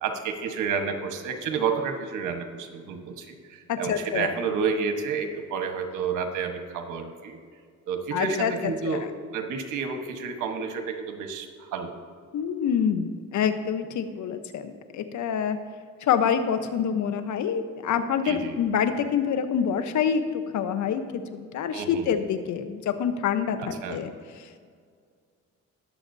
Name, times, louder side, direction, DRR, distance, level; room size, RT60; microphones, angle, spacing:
voice 1, 0.0-7.4 7.9-11.9 18.2-18.6 21.7-22.1 23.6-24.0, right 5 dB, 90° right, 5 dB, 1.2 m, -30 dB
voice 2, 3.7-4.3 8.1-9.1 12.3-15.6 16.0-24.1 24.4-24.6, left 7 dB, 70° left, 9 dB, 1.0 m, -26 dB
19.5 x 7.3 x 2.7 m, 2.1 s
cardioid pair, 90°, 30 cm